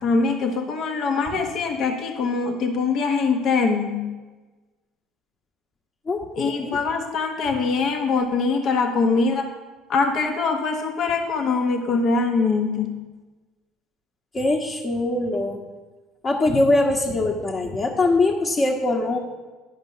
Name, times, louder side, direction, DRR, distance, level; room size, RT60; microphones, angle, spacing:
voice 1, 0.0-4.0 6.4-9.5 9.9-12.9, left 4 dB, 55° left, 4 dB, 1.1 m, -23 dB
voice 2, 6.1-6.7 14.3-15.6 16.2-19.2, left 2 dB, 30° left, -3 dB, 1.2 m, -22 dB
10.5 x 5.2 x 7.3 m, 1.3 s
supercardioid pair, 95°, 0 cm